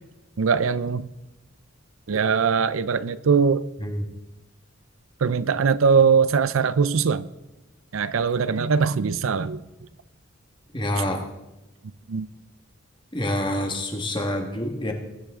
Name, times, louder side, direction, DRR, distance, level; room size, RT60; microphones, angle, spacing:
voice 1, 0.4-1.1 2.1-3.6 5.2-7.3 7.9-9.6 12.1-12.3, right 5 dB, 85° right, 0.5 m, -21 dB
voice 2, 10.7-11.2 13.1-14.9, left 1 dB, 25° left, 1.6 m, -27 dB
20.5 x 10.5 x 3.7 m
head